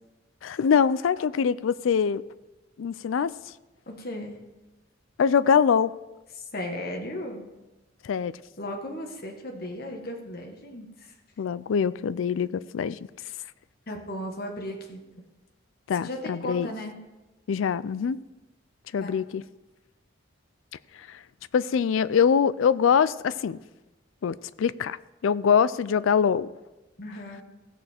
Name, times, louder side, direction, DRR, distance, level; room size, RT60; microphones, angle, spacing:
voice 1, 0.4-2.2 2.8-3.3 5.2-5.9 8.0-8.3 11.4-13.0 15.9-16.7 17.5-18.2 18.9-19.4 21.1-21.2 21.5-23.6 24.2-25.0 25.2-26.5, left 7 dB, 75° left, 17 dB, 0.4 m, -23 dB
voice 2, 3.9-4.4 6.3-7.5 8.6-11.1 13.9-15.0 16.0-17.0 19.0-19.1 27.0-27.4, left 1 dB, 50° left, 2 dB, 1.4 m, -36 dB
16.0 x 6.7 x 4.4 m, 1.1 s
head